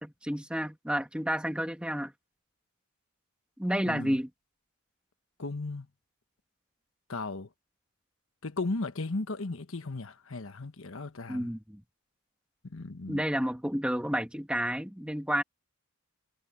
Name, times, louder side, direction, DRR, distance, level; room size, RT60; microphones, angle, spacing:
voice 1, 0.0-2.1 3.6-4.3 11.3-11.8 13.1-15.4, equal, 5° right, 1.9 m, -30 dB
voice 2, 3.8-4.2 5.4-5.9 7.1-7.5 8.4-11.5 12.6-13.2, left 3 dB, 75° left, 1.2 m, -36 dB
head